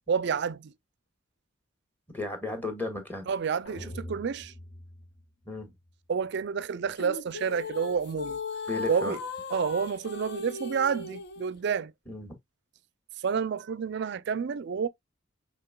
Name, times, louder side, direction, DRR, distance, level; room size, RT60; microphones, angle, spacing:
voice 1, 0.1-0.7 3.3-4.5 6.1-8.4 8.9-9.2 9.5-11.9 13.2-14.9, right 6 dB, 60° right, 0.4 m, -29 dB
voice 2, 2.1-3.3 5.4-5.7 8.7-9.1 12.1-12.3, left 2 dB, 10° left, 1.5 m, -34 dB
sound 1, 3.6-5.9, left 1 dB, 85° left, 1.6 m, -44 dB
sound 2, 7.0-11.5, left 4 dB, 60° left, 0.7 m, -37 dB
5.8 x 3.5 x 2.3 m
head